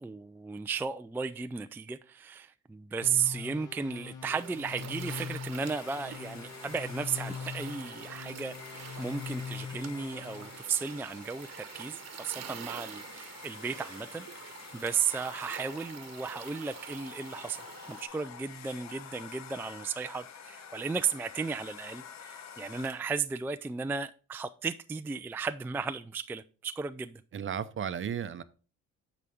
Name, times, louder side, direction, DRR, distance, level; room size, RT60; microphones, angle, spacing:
voice 1, 0.0-17.6 17.9-27.2, right 5 dB, 5° right, 0.3 m, -35 dB
sound 1, 3.0-10.6, left 6 dB, 85° left, 1.3 m, -42 dB
sound 2, 4.2-18.0, right 9 dB, 60° right, 1.0 m, -47 dB
Domestic sounds home sounds, 5.5-23.2, left 8 dB, 65° left, 0.9 m, -49 dB
voice 2, 27.3-28.4, right 8 dB, 40° right, 0.7 m, -34 dB
9.4 x 5.0 x 3.5 m
cardioid pair, 90°, 30 cm